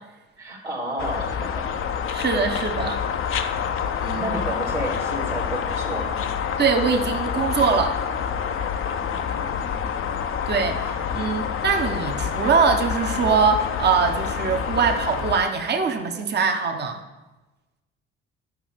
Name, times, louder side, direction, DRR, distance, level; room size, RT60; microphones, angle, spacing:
voice 1, 0.4-1.7 2.4-2.6 3.8-6.3 9.1-9.8, right 1 dB, 85° right, -3 dB, 1.6 m, -32 dB
sound 1, 1.0-15.4, left 7 dB, 40° left, 0.8 m, -27 dB
voice 2, 2.1-3.0 4.0-4.2 6.6-8.0 10.5-17.0, right 5 dB, 30° right, 3 dB, 1.2 m, -22 dB
10.5 x 5.4 x 6.7 m, 1.1 s
figure-of-eight pair, 50°, 33 cm